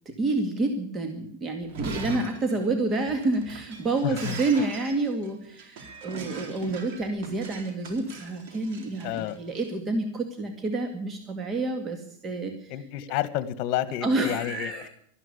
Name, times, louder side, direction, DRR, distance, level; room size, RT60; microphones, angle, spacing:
voice 1, 0.1-12.7 14.0-14.9, right 2 dB, 25° right, 5 dB, 2.1 m, -29 dB
Shatter, 1.6-9.6, right 4 dB, 65° right, 3.9 m, -41 dB
voice 2, 4.0-4.4 9.0-9.4 12.7-14.9, left 12 dB, 50° left, 14 dB, 1.5 m, -30 dB
13.0 x 12.5 x 8.5 m, 0.67 s
supercardioid pair, 135°, 0 cm